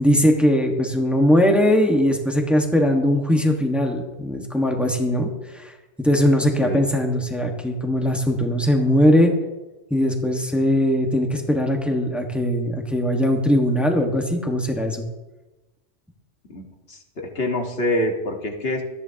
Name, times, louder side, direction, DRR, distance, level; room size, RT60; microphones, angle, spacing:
voice 1, 0.0-5.7 6.0-9.3 9.9-15.0, equal, ahead, 2 dB, 1.5 m, -20 dB
voice 2, 16.5-18.8, left 1 dB, 55° left, 1 dB, 2.1 m, -26 dB
19.5 x 13.5 x 2.9 m, 1.1 s
omnidirectional pair, 1.2 m